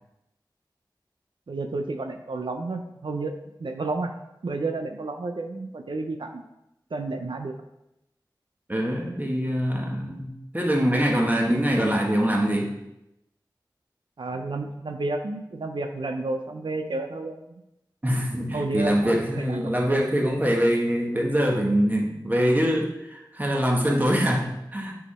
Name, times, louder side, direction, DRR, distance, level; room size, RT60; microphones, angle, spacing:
voice 1, 1.5-4.1 4.4-6.4 6.9-7.6 14.2-17.6 18.5-20.0, right 2 dB, 90° right, 5 dB, 0.6 m, -31 dB
voice 2, 8.7-12.7 18.0-25.0, equal, 20° right, 0 dB, 1.5 m, -24 dB
8.2 x 4.9 x 4.3 m, 0.88 s
wide cardioid pair, 55°, 8 cm